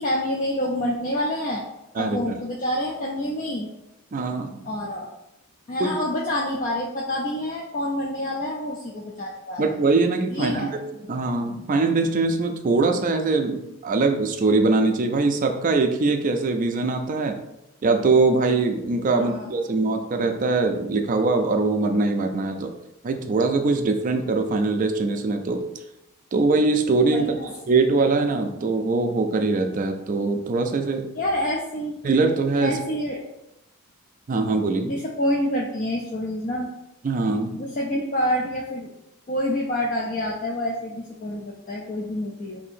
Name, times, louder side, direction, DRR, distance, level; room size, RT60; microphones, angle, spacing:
voice 1, 0.0-1.6 2.0-3.7 4.6-5.1 5.7-9.6 10.3-10.7 19.1-19.6 27.1-27.5 31.1-32.0 32.6-33.2 34.8-36.7 37.5-38.9 39.3-42.6, left 1 dB, 35° left, -2 dB, 0.4 m, -27 dB
voice 2, 2.0-2.4 4.1-4.6 5.8-5.9 9.6-10.7 11.1-17.4 17.8-22.7 23.0-25.6 26.3-27.3 27.7-31.1 32.0-32.8 34.3-35.0 37.0-37.6, right 3 dB, 35° right, 5 dB, 0.3 m, -22 dB
2.7 x 2.6 x 4.2 m, 0.87 s
head